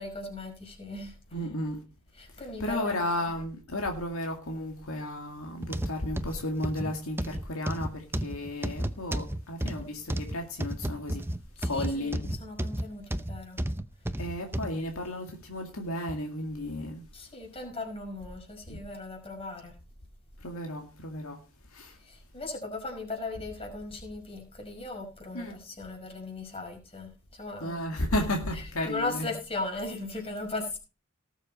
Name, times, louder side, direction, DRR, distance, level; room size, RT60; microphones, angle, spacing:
voice 1, 0.0-1.1 2.1-3.0 9.8-9.9 11.6-13.6 17.1-19.7 22.0-27.8 28.9-30.8, left 2 dB, 25° left, 5.5 m, -38 dB
voice 2, 1.3-1.8 2.6-11.2 11.6-12.2 14.2-17.1 18.7-18.8 20.4-21.4 21.7-22.0 25.3-25.6 27.6-29.3, left 1 dB, 70° left, 2.2 m, -33 dB
sound 1, 5.6-14.7 15.3-15.4 16.1-16.2, right 1 dB, 10° right, 0.7 m, -33 dB
18.5 x 7.3 x 4.2 m
head